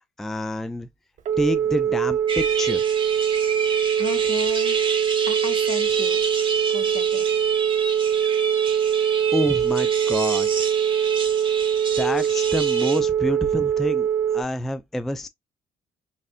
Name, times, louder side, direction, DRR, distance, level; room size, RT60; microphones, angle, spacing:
voice 1, 0.2-0.9 1.4-2.8 9.3-10.7 12.0-14.1 14.3-15.3, left 1 dB, ahead, 0.3 m, -27 dB
Telephone, 1.2-14.4, right 9 dB, 60° right, 0.7 m, -22 dB
sound 1, 2.3-13.0, right 4 dB, 35° right, 1.0 m, -30 dB
voice 2, 3.6-4.8 5.3-6.2 6.7-7.3, left 6 dB, 50° left, 0.7 m, -36 dB
4.2 x 2.4 x 2.4 m
supercardioid pair, 80°, 15 cm